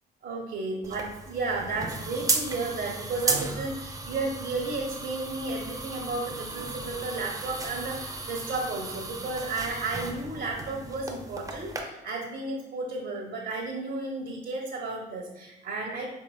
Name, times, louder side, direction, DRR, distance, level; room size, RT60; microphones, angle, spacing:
voice 1, 0.2-16.1, right 3 dB, 65° right, -1 dB, 0.7 m, -33 dB
sound 1, 0.8-11.8, right 2 dB, 15° right, 0.5 m, -35 dB
4.6 x 2.8 x 2.2 m, 0.99 s
cardioid pair, 90°, 20 cm